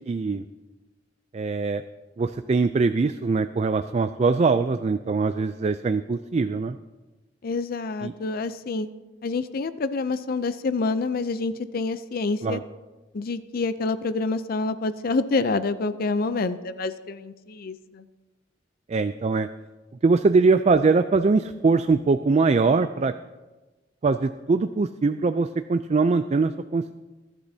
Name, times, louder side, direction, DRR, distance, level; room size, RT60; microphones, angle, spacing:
voice 1, 0.1-0.4 1.3-1.8 2.2-6.8 8.0-8.1 12.4-12.6 18.9-19.5 20.0-23.1 24.0-26.9, right 4 dB, 35° right, 10 dB, 0.3 m, -22 dB
voice 2, 7.4-8.9 9.2-12.6 13.1-18.0, left 3 dB, 50° left, 12 dB, 0.5 m, -27 dB
20.5 x 11.5 x 2.8 m, 1.2 s
head